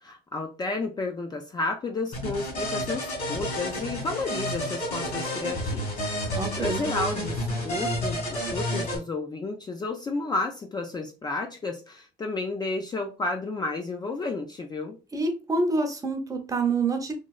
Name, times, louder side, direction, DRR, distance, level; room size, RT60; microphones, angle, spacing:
voice 1, 0.0-5.8 6.2-7.4 7.6-15.0, left 3 dB, 25° left, 3 dB, 0.4 m, -32 dB
sound 1, 2.1-9.0, equal, 50° left, 1.6 m, -30 dB
voice 2, 6.3-6.8 15.1-17.1, right 3 dB, 20° right, 4 dB, 0.7 m, -27 dB
3.1 x 2.2 x 2.4 m, 0.31 s
cardioid pair, 110°, 17 cm